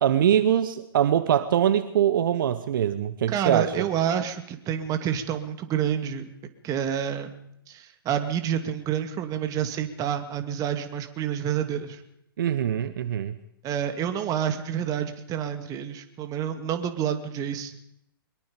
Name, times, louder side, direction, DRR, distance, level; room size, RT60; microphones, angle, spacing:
voice 1, 0.0-3.9 12.4-13.3, right 10 dB, 60° right, 12 dB, 1.2 m, -23 dB
voice 2, 3.3-6.3 6.6-7.3 7.7-12.0 13.6-17.7, right 9 dB, 30° right, 8 dB, 2.4 m, -28 dB
23.0 x 22.0 x 5.3 m, 0.76 s
figure-of-eight pair, 115°, 12 cm